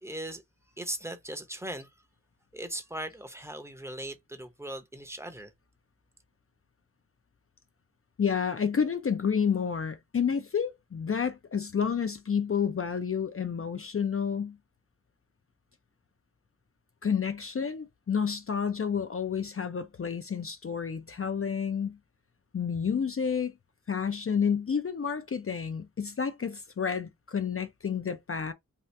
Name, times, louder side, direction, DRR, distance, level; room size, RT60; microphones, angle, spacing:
voice 1, 0.0-0.4 0.8-1.9 2.5-5.5, right 1 dB, 10° right, 0.6 m, -38 dB
voice 2, 8.2-14.6 17.0-22.0 22.5-23.5 23.9-28.5, left 7 dB, 45° left, 0.4 m, -30 dB
2.8 x 2.4 x 3.2 m
wide cardioid pair, 50°, 32 cm